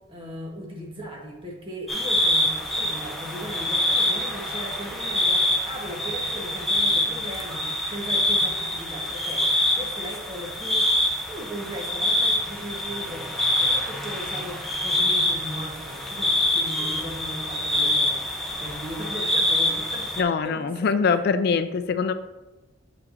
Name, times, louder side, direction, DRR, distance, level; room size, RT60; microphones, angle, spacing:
voice 1, 0.1-10.9 11.3-21.2, equal, 25° right, -1 dB, 1.2 m, -38 dB
sound 1, 1.9-20.2, left 1 dB, ahead, 0.7 m, -25 dB
voice 2, 20.2-22.1, left 5 dB, 55° left, 11 dB, 0.3 m, -23 dB
7.9 x 5.7 x 2.6 m, 1.1 s
head